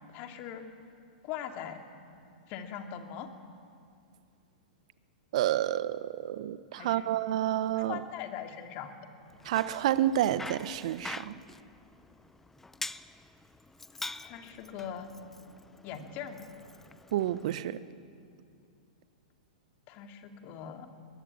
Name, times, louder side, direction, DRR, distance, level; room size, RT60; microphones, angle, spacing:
voice 1, 0.1-0.6 1.2-1.8 2.5-3.3 6.7-7.1 7.8-9.0 14.2-15.1 15.8-16.5 19.9-20.9, left 9 dB, 45° left, 4 dB, 2.6 m, -41 dB
voice 2, 5.3-8.0 9.4-11.3 17.1-17.8, right 12 dB, 60° right, 15 dB, 1.1 m, -29 dB
Bicycle, 9.3-17.6, left 2 dB, 5° left, 0.7 m, -45 dB
22.0 x 20.5 x 8.6 m, 2.5 s
hypercardioid pair, 110°, 4 cm